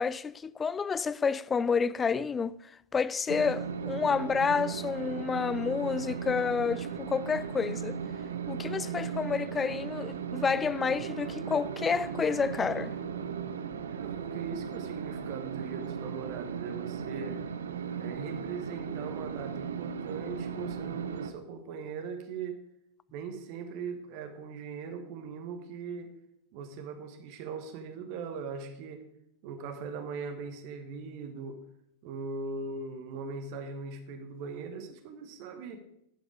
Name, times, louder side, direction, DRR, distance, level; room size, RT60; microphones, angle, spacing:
voice 1, 0.0-2.5 2.9-8.0 8.5-12.9, left 5 dB, 20° left, 0.3 m, -29 dB
sound 1, 3.3-21.3, right 7 dB, 65° right, 0.7 m, -37 dB
voice 2, 13.9-17.4 18.0-22.6 23.1-26.1 26.5-29.0 29.4-31.6 32.0-35.8, right 5 dB, 45° right, 1.3 m, -40 dB
10.5 x 7.8 x 5.0 m
figure-of-eight pair, 90°, 0 cm